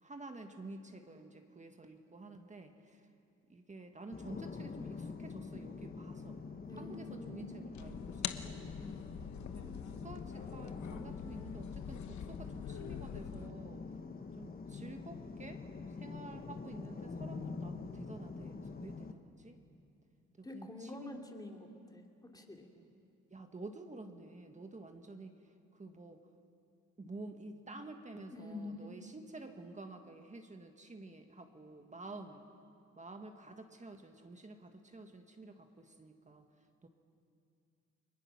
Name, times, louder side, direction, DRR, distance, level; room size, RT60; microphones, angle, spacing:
voice 1, 0.0-3.0 3.5-6.4 6.7-8.7 9.5-13.8 14.4-19.6 20.4-21.2 22.8-22.9 23.3-25.3 25.7-26.2 27.0-32.5 33.0-36.5 36.8-36.9, right 2 dB, 25° right, 5 dB, 1.6 m, -50 dB
sound 1, 4.1-19.1, left 4 dB, 30° left, 1.3 m, -45 dB
voice 2, 6.7-7.4 8.8-9.0 20.4-22.7 28.3-29.0, left 2 dB, 15° left, 2 dB, 2.9 m, -47 dB
sound 2, 7.7-13.5, left 9 dB, 70° left, 1.1 m, -45 dB
30.0 x 21.0 x 6.1 m, 2.5 s
cardioid pair, 90°, 30 cm